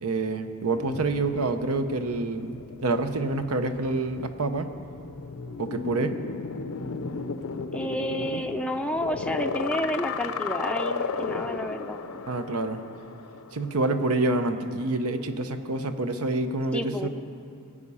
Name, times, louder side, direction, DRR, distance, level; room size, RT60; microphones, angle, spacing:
voice 1, 0.0-4.7 5.6-6.2 12.3-12.8 13.5-17.1, right 2 dB, 80° right, 8 dB, 0.8 m, -27 dB
sound 1, 0.7-14.6 15.0-16.3, left 4 dB, 70° left, 0.6 m, -35 dB
voice 2, 7.7-12.2 16.7-17.1, left 1 dB, 5° left, 4 dB, 0.4 m, -30 dB
19.5 x 8.4 x 5.6 m, 2.4 s
head